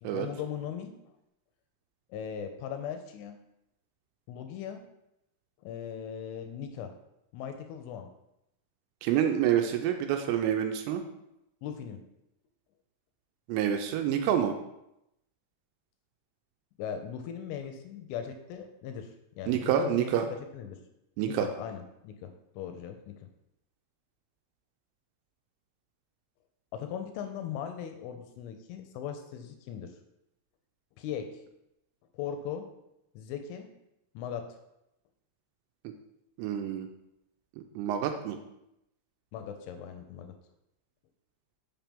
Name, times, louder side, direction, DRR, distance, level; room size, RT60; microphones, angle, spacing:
voice 1, 0.0-0.9 2.1-3.4 4.3-4.8 5.6-6.9 7.3-8.1 11.6-12.0 16.8-20.2 20.5-20.9 21.3-23.2 26.7-30.0 31.0-31.3 32.1-32.7 33.2-33.7 34.2-34.6 39.3-40.4, left 8 dB, 85° left, 6 dB, 2.9 m, -39 dB
voice 2, 9.0-11.0 13.5-14.5 19.5-20.3 21.2-21.5 36.4-36.9 37.8-38.4, right 9 dB, 85° right, 5 dB, 3.0 m, -27 dB
7.3 x 5.7 x 3.5 m, 0.85 s
omnidirectional pair, 5.9 m